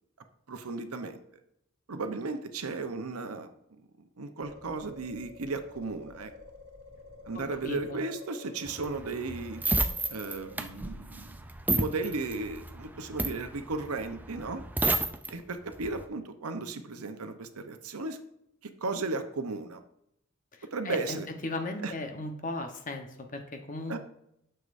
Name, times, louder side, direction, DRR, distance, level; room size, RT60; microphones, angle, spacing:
voice 1, 0.5-1.2 1.9-3.5 4.2-6.3 7.3-9.6 10.1-11.4 11.7-14.7 15.3-18.2 18.6-19.8 20.7-21.3 21.8-21.9 23.9-24.0, right 3 dB, 90° right, 8 dB, 0.8 m, -35 dB
sound 1, 4.4-10.6, left 3 dB, 50° right, 2.1 m, -49 dB
voice 2, 7.6-8.0 20.5-24.0, left 2 dB, 35° left, 5 dB, 1.0 m, -37 dB
sound 2, 8.7-15.3 15.7-16.0, right 2 dB, 10° right, 0.3 m, -31 dB
9.5 x 6.7 x 2.6 m, 0.78 s
head